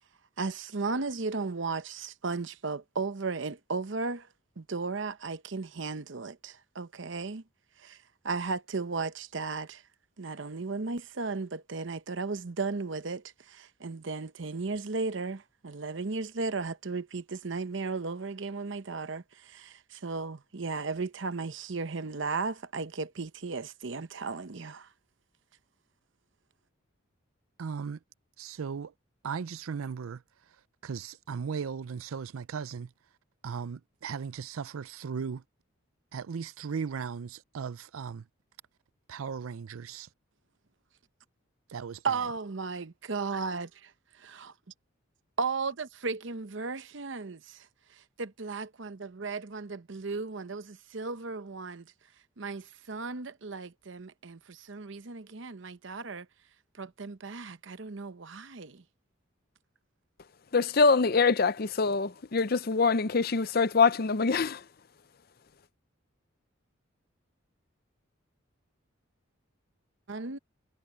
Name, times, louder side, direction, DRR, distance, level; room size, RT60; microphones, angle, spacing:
voice 1, 0.4-4.3 4.6-7.4 7.8-8.0 8.2-9.8 10.2-24.9 42.0-43.9 44.2-44.5 45.4-47.7 47.9-51.9 52.4-56.3 56.8-58.8 70.1-70.4, right 4 dB, 65° right, 0.8 m, -35 dB
voice 2, 27.6-28.0 28.4-28.9 29.2-30.2 30.8-32.9 33.4-35.4 36.1-38.2 39.1-40.1 41.7-42.1, right 6 dB, 85° right, 0.5 m, -37 dB
voice 3, 60.5-64.6, left 4 dB, 45° left, 0.6 m, -24 dB
head